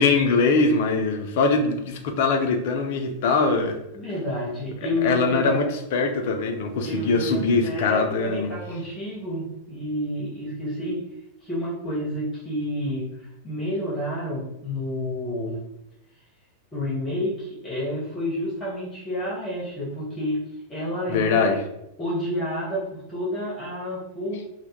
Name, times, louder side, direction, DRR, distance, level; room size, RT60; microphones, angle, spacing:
voice 1, 0.0-3.8 5.0-8.5 21.1-21.6, left 4 dB, 50° left, 5 dB, 0.3 m, -22 dB
voice 2, 3.9-5.7 6.8-11.0 11.4-15.6 16.7-20.4 20.7-21.6 22.0-24.4, equal, 20° left, -7 dB, 0.7 m, -29 dB
2.1 x 2.0 x 2.9 m, 0.84 s
figure-of-eight pair, 90°, 0 cm